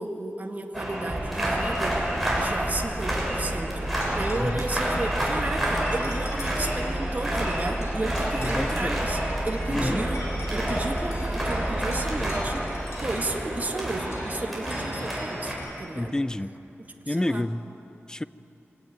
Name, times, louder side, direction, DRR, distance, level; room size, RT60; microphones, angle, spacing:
voice 1, 0.0-9.2 9.4-16.1 17.1-17.4, right 2 dB, 35° right, 3 dB, 2.0 m, -33 dB
sound 1, 0.7-15.5, right 1 dB, ahead, 6.6 m, -30 dB
sound 2, 1.1-14.4, right 1 dB, 15° right, 0.8 m, -33 dB
sound 3, 3.9-15.7, left 1 dB, 75° left, 4.8 m, -45 dB
voice 2, 8.4-9.0 9.7-10.0 15.9-16.5 17.1-17.6 18.1-18.2, left 1 dB, 15° left, 16 dB, 0.5 m, -28 dB
24.5 x 18.0 x 9.5 m, 2.9 s
wide cardioid pair, 105°, 5 cm